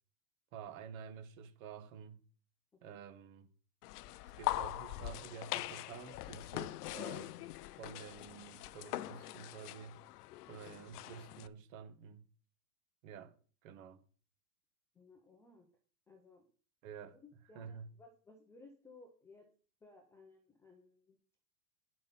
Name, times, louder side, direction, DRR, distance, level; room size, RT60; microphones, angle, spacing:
voice 1, 0.5-2.2 2.8-3.5 4.4-7.5 7.8-10.0 10.5-12.2 13.0-13.3 13.6-14.0 16.8-17.2 17.6-17.9, right 7 dB, 60° right, 1.8 m, -50 dB
sound 1, 3.8-11.5, left 16 dB, 75° left, 0.7 m, -42 dB
voice 2, 14.9-15.7 16.1-16.5 17.1-19.5 19.8-21.2, left 3 dB, 5° left, 0.4 m, -60 dB
10.0 x 5.2 x 5.6 m
supercardioid pair, 155°, 47 cm